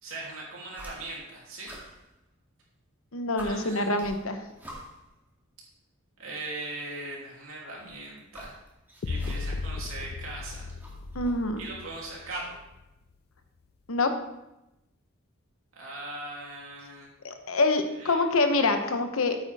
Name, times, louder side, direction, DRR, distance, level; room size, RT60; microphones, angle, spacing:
voice 1, 0.0-1.7 3.4-4.0 6.2-8.5 9.0-10.7 11.6-12.6 15.7-17.1 18.0-18.2, right 2 dB, 80° right, -3 dB, 3.0 m, -39 dB
sound 1, 0.7-1.3 1.6-2.7 3.0-3.1 3.4-5.1 6.2-6.3 7.6-9.7 10.0-11.5, equal, 10° right, 2.0 m, -46 dB
voice 2, 3.1-4.4 11.1-11.6 13.9-14.1 17.2-19.4, left 2 dB, 75° left, 7 dB, 1.0 m, -26 dB
sound 2, 9.0-13.0, left 3 dB, 50° left, 0.3 m, -36 dB
8.9 x 8.4 x 3.5 m, 0.91 s
head